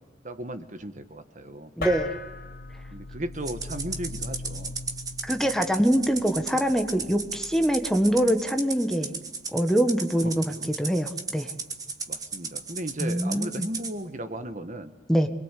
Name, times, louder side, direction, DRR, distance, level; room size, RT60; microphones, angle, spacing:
voice 1, 0.2-1.7 2.9-4.7 5.8-6.0 10.1-11.0 12.1-14.9, right 1 dB, 40° right, 9 dB, 1.5 m, -36 dB
sound 1, 1.8-8.5, left 2 dB, 50° left, 5.1 m, -40 dB
voice 2, 1.8-2.1 5.2-9.2 9.5-10.4 10.8-11.5 13.0-13.7 15.1-15.3, equal, 5° left, 6 dB, 1.6 m, -24 dB
Rattle (instrument), 3.5-13.9, right 4 dB, 20° right, 1.9 m, -35 dB
25.5 x 22.5 x 8.4 m, 1.1 s
head